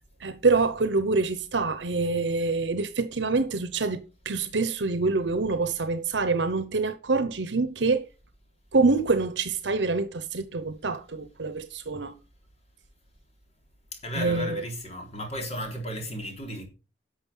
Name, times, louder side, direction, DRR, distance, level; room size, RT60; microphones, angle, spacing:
voice 1, 0.2-8.1 8.7-12.1 14.1-14.6, right 3 dB, 85° right, 0.9 m, -26 dB
voice 2, 13.9-16.6, equal, 35° left, 3.6 m, -34 dB
11.5 x 6.7 x 5.6 m
head